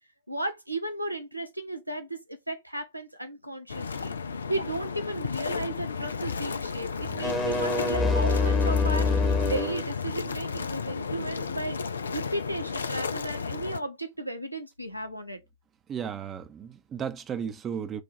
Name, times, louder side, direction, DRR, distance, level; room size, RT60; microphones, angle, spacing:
voice 1, 0.3-4.2 4.5-9.1 9.4-11.8 12.1-15.4, right 1 dB, 90° right, 0.6 m, -34 dB
sound 1, 3.7-13.8, left 5 dB, 75° left, 0.3 m, -33 dB
sound 2, 7.0-9.8, left 3 dB, 15° left, 1.1 m, -25 dB
voice 2, 15.9-18.0, right 7 dB, 25° right, 0.7 m, -34 dB
4.9 x 2.3 x 4.3 m
figure-of-eight pair, 90°, 0 cm